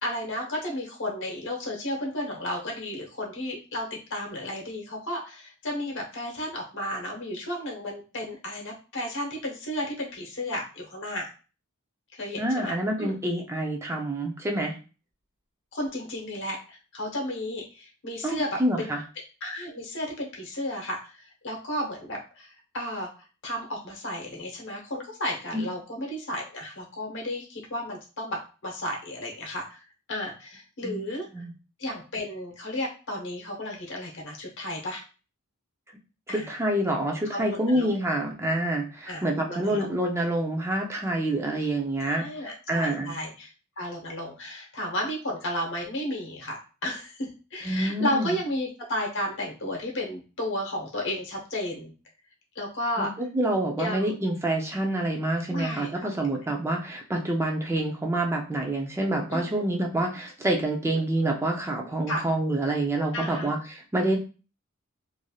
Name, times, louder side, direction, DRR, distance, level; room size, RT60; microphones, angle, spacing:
voice 1, 0.0-11.3 12.1-13.1 15.7-18.5 18.8-18.9 19.4-23.1 23.4-31.4 31.8-35.0 36.3-36.5 37.2-37.9 39.1-39.9 42.0-51.9 52.5-53.1 53.8-54.1 55.5-56.1 59.3-59.6 60.9-61.0 62.1-62.2 63.1-63.5, left 1 dB, 60° left, 0 dB, 1.0 m, -33 dB
voice 2, 12.4-14.7 18.2-19.0 25.5-25.6 30.8-31.0 31.3-31.5 36.3-43.1 47.6-48.3 53.0-64.2, right 1 dB, 10° right, 1 dB, 0.4 m, -27 dB
3.2 x 2.6 x 2.3 m, 0.34 s
head